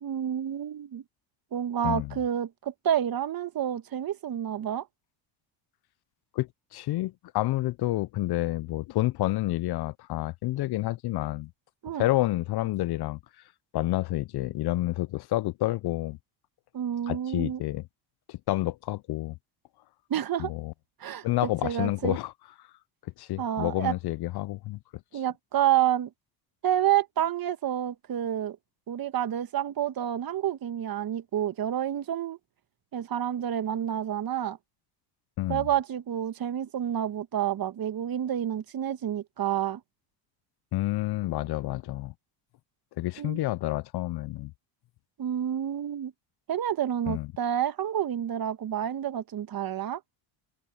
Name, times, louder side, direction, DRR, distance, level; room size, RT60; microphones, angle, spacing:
voice 1, 0.0-1.0 1.5-4.9 11.8-12.0 16.7-17.6 20.1-20.5 21.0-21.3 21.6-22.2 23.4-23.9 25.1-26.1 26.6-28.6 28.9-32.4 32.9-34.6 35.5-39.8 43.2-43.4 45.2-46.1 46.5-50.0, right 10 dB, 45° right, 1.7 m, -29 dB
voice 2, 6.3-11.5 11.9-13.2 13.7-16.2 17.1-17.8 18.3-19.3 20.4-20.7 21.2-22.3 23.2-24.8 35.4-35.6 40.7-42.1 43.0-44.5 47.1-47.3, left 17 dB, 50° left, 0.7 m, -29 dB
supercardioid pair, 75°, 50 cm